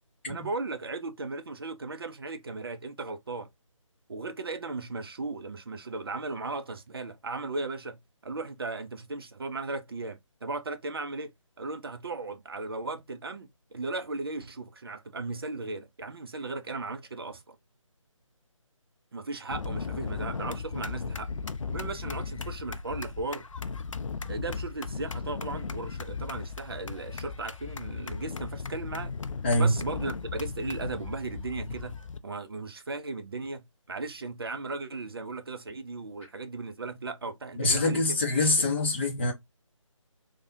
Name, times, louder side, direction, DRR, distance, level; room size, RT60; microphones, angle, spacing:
voice 1, 0.2-3.5 4.1-11.3 11.6-17.6 19.1-21.3 21.7-23.5 24.3-29.1 29.6-32.0 32.2-38.2 38.6-38.7, right 3 dB, 45° right, 0.5 m, -36 dB
sound 1, 19.5-32.2, left 5 dB, 70° left, 0.4 m, -36 dB
voice 2, 37.6-39.3, left 2 dB, 20° left, 0.6 m, -24 dB
3.2 x 2.1 x 2.6 m
figure-of-eight pair, 150°, 17 cm